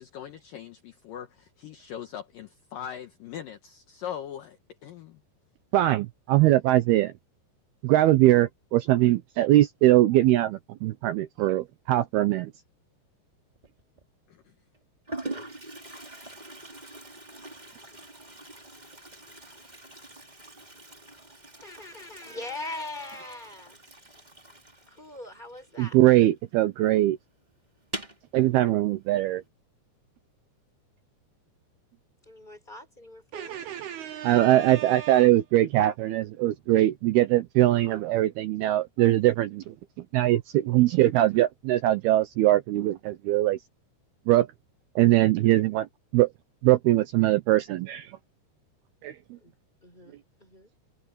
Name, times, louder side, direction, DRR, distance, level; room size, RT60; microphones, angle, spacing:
voice 1, 0.0-5.2 14.3-14.5, left 9 dB, 70° left, 2.3 m, -40 dB
voice 2, 5.7-7.1 7.8-12.5 25.8-27.2 28.3-29.4 33.3-43.6 44.3-44.5 45.0-45.9 46.1-46.3 46.6-48.2 49.0-49.2, right 15 dB, 75° right, 2.5 m, -22 dB
Toilet flush, 13.6-14.0 14.7-14.8 15.1-26.4 26.6-26.7 27.0-27.1 27.8-28.3, right 2 dB, 10° right, 2.7 m, -43 dB
voice 3, 21.6-23.8 24.9-26.0 32.2-33.7 49.4-49.5 49.8-50.7, left 2 dB, 10° left, 6.1 m, -41 dB
omnidirectional pair, 5.1 m